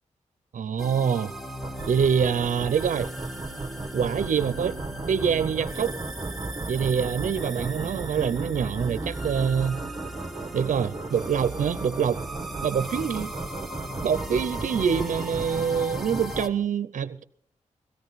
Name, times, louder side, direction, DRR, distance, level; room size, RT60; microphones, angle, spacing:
voice 1, 0.5-1.3 1.9-3.1 3.9-4.8 5.1-5.9 6.7-9.8 10.5-12.2 12.6-13.3 14.0-17.2, right 7 dB, 80° right, 0.6 m, -25 dB
sound 1, 0.8-16.5, right 1 dB, ahead, 1.2 m, -38 dB
sound 2, 1.6-16.4, right 3 dB, 30° right, 1.1 m, -36 dB
17.0 x 14.5 x 4.0 m
cardioid pair, 60°, 13 cm